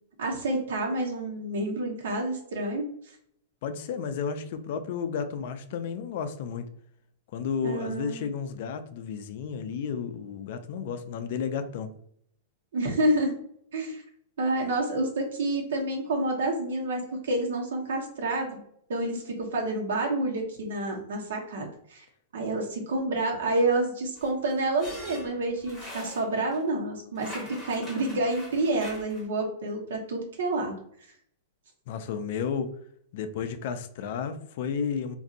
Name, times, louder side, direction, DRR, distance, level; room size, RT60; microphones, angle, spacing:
voice 1, 0.2-2.9 7.6-8.2 12.7-13.3 13.7-14.0 14.4-18.6 18.9-22.0 22.3-30.7, right 2 dB, 75° right, 1.1 m, -28 dB
voice 2, 3.6-6.7 7.3-11.9 31.9-32.7 33.1-35.2, left 6 dB, 45° left, 0.4 m, -32 dB
sound 1, 24.2-26.6 27.1-29.3, equal, ahead, 1.0 m, -43 dB
4.0 x 2.6 x 2.5 m
supercardioid pair, 175°, 0 cm